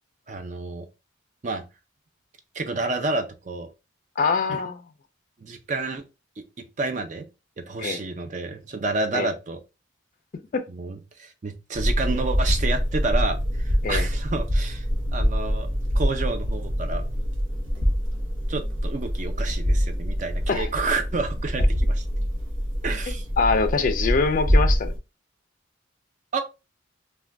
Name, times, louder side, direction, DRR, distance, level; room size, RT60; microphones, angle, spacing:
voice 1, 0.3-0.9 1.4-1.6 2.5-3.7 4.5-4.6 5.4-6.0 6.4-6.5 6.8-7.3 7.6-9.6 10.7-14.8 15.1-15.7 16.0-17.0 18.5-22.0 22.8-23.3 26.3-26.4, right 3 dB, 40° right, 0.4 m, -29 dB
voice 2, 4.2-4.8 7.8-8.0 9.1-9.3 10.5-10.6 13.8-14.1 20.5-20.7 23.4-24.9, left 4 dB, 40° left, 0.3 m, -23 dB
sound 1, 11.7-25.0, equal, 75° right, 0.8 m, -25 dB
2.4 x 2.2 x 3.3 m
head